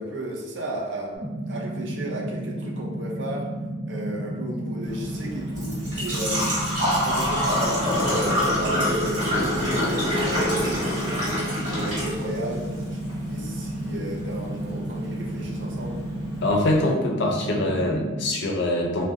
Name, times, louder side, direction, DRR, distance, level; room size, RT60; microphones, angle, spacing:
voice 1, 0.0-3.5 3.9-6.6 7.0-11.3 11.7-13.0 13.3-16.0, right 1 dB, 65° right, -2 dB, 0.5 m, -34 dB
sound 1, 1.1-18.3, right 1 dB, 80° right, 1.0 m, -32 dB
Engine / Trickle dribble / Fill (with liquid), 4.9-16.8, left 1 dB, 35° right, 1.1 m, -27 dB
voice 2, 16.4-19.0, left 1 dB, 60° left, 1 dB, 0.4 m, -24 dB
2.4 x 2.1 x 2.7 m, 1.2 s
head